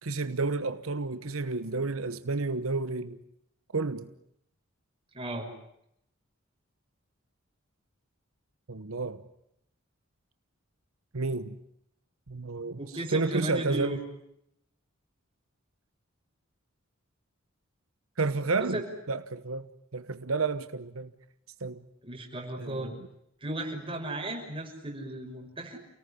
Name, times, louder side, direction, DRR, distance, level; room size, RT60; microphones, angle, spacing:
voice 1, 0.0-3.2 3.7-4.1 8.7-9.2 11.1-11.6 12.3-14.0 18.2-18.8 19.1-21.1 21.6-21.9 22.6-23.1, right 3 dB, 85° right, 1.1 m, -31 dB
voice 2, 5.1-5.5 12.8-14.0 18.7-18.9 22.0-22.9 23.4-25.8, right 1 dB, 25° right, 6.2 m, -35 dB
29.5 x 18.5 x 10.0 m
head